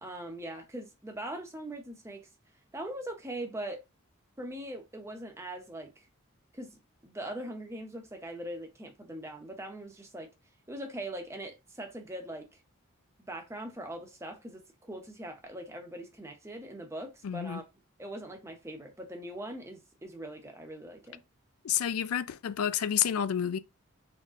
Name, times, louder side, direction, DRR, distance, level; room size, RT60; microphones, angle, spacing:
voice 1, 0.0-2.3 2.7-3.8 4.4-5.9 6.5-10.3 10.7-12.5 13.3-17.6 18.0-21.2, right 1 dB, 15° right, 0.8 m, -41 dB
voice 2, 17.2-17.6 21.6-23.6, left 9 dB, 90° left, 0.4 m, -29 dB
4.0 x 3.4 x 3.7 m
head